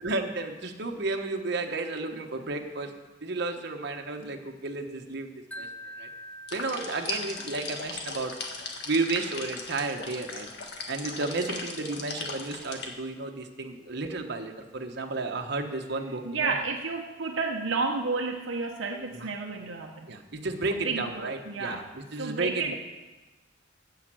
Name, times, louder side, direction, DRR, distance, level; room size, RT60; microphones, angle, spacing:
voice 1, 0.0-2.9 3.2-5.3 5.6-5.7 6.0-6.1 6.5-8.3 8.8-10.5 10.9-16.5 19.1-19.3 20.1-22.7, right 3 dB, 60° right, 4 dB, 1.2 m, -32 dB
Wind chime, 5.5-8.6, equal, 10° left, 0.7 m, -46 dB
sound 1, 6.5-12.9, left 4 dB, 60° left, 1.6 m, -38 dB
voice 2, 16.2-20.1 20.7-21.9 22.2-22.7, right 4 dB, 80° right, 1 dB, 0.9 m, -31 dB
15.0 x 5.8 x 7.6 m, 1.2 s
head